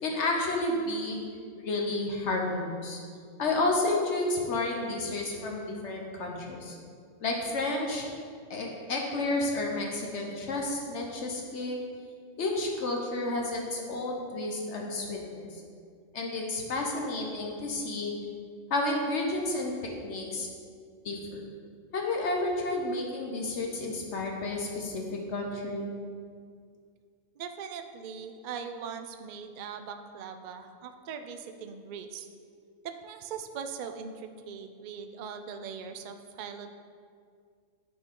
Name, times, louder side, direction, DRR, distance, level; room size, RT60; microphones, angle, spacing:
voice 1, 0.0-1.3 1.6-3.0 3.4-6.8 7.2-8.1 8.5-11.8 12.4-15.6 16.1-18.1 18.7-19.7 20.0-20.5 21.0-21.4 21.9-25.9, left 2 dB, 65° left, 0 dB, 1.1 m, -31 dB
voice 2, 27.4-32.3 33.0-36.7, right 6 dB, 65° right, 7 dB, 0.4 m, -40 dB
9.4 x 4.4 x 3.7 m, 2.1 s
omnidirectional pair, 1.3 m